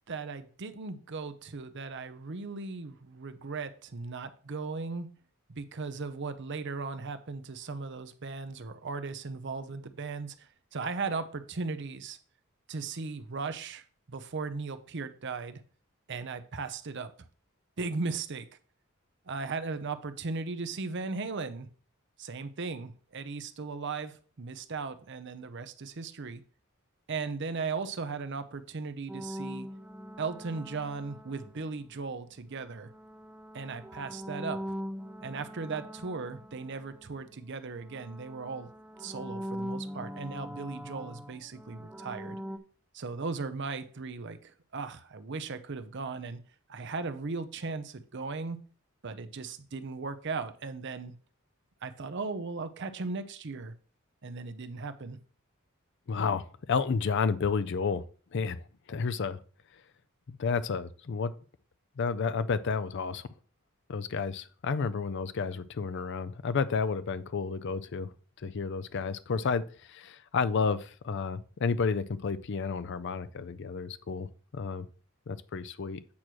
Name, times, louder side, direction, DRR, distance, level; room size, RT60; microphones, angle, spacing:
voice 1, 0.1-5.1 5.5-12.2 12.7-15.6 16.1-17.1 17.8-18.5 19.3-21.7 22.2-26.4 27.1-29.7 30.2-32.9 33.5-34.6 35.2-38.7 39.0-42.4 42.9-46.4 46.7-48.6 49.0-51.1 51.8-53.7 54.2-55.2, right 4 dB, 55° right, 0.7 m, -37 dB
sound 1, 29.1-32.0 32.7-37.5 37.7-42.6, equal, 5° right, 0.4 m, -42 dB
voice 2, 56.1-58.0 58.3-58.6 58.9-59.4 60.3-61.3 62.0-63.3 63.9-68.1 68.4-69.6 69.9-74.9 75.3-76.0, left 5 dB, 55° left, 0.4 m, -31 dB
8.5 x 3.0 x 6.1 m
head